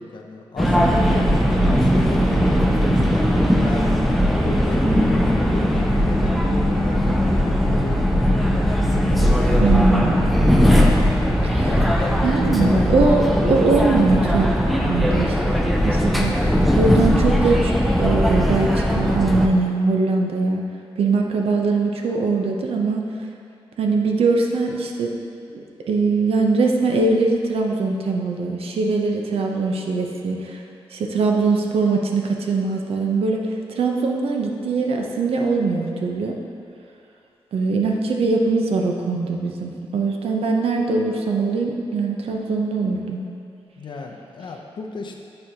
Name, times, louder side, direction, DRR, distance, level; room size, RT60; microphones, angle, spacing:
voice 1, 0.0-2.9 3.6-3.9 4.3-10.0 11.6-12.2 12.5-12.9 13.4-13.6 16.4-16.5 43.8-45.2, left 3 dB, 50° left, 2 dB, 0.5 m, -33 dB
sound 1, 0.6-19.5, equal, ahead, 0.4 m, -19 dB
voice 2, 9.6-10.3 11.4-11.7 12.2-15.4 15.8-16.3 16.7-20.7 21.0-23.0 23.8-25.1 25.5-30.6 30.9-33.4 33.7-36.4 37.5-43.2, right 3 dB, 80° right, 1 dB, 0.6 m, -21 dB
8.7 x 4.4 x 2.8 m, 2.4 s
wide cardioid pair, 155°, 10 cm